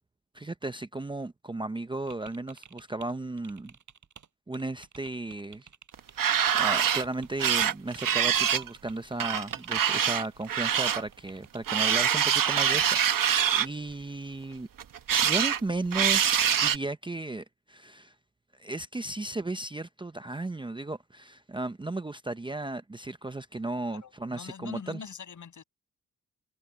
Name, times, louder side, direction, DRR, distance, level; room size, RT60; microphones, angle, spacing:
voice 1, 0.3-3.7 4.5-5.7 6.5-14.7 15.2-18.1 18.5-25.0, right 2 dB, 15° right, 0.5 m, -35 dB
sound 1, 2.1-3.1 3.4-4.3 4.5-7.4 7.6-11.8, right 7 dB, 65° right, 7.4 m, -52 dB
sound 2, 5.9-7.0 7.4-8.7 9.2-11.0 11.7-13.7 14.8-15.6 15.9-16.8, right 9 dB, 80° right, 1.2 m, -24 dB
voice 2, 23.9-25.6, left 6 dB, 65° left, 7.7 m, -43 dB
wide cardioid pair, 150°, 32 cm